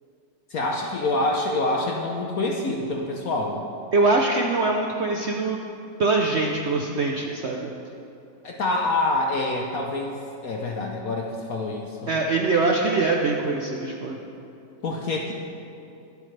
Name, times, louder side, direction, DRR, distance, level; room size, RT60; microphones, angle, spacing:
voice 1, 0.5-3.6 8.4-12.1 14.8-15.3, left 2 dB, 60° left, 0 dB, 1.2 m, -26 dB
voice 2, 3.9-5.6 6.0-7.7 12.1-14.2, right 3 dB, 55° right, 0 dB, 0.8 m, -23 dB
21.0 x 8.3 x 3.3 m, 2.7 s
omnidirectional pair, 1.9 m